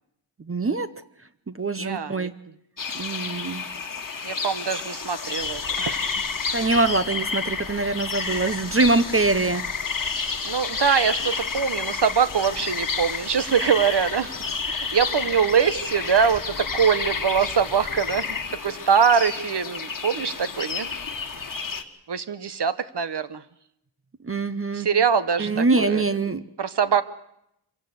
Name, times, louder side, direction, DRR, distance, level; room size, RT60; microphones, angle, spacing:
voice 1, 0.5-0.9 1.5-2.3 2.9-3.6 6.5-9.6 24.3-24.9 25.4-26.4, right 3 dB, 25° right, 13 dB, 0.8 m, -23 dB
voice 2, 1.8-2.3 4.2-6.2 6.6-6.8 10.4-14.4 14.7-18.4 18.6-20.9 22.1-23.4 24.7-26.2 26.6-27.0, right 7 dB, 55° right, 13 dB, 1.0 m, -23 dB
sound 1, 2.8-21.8, left 5 dB, 40° left, 1.6 m, -30 dB
25.5 x 16.5 x 7.9 m, 0.78 s
wide cardioid pair, 100°, 50 cm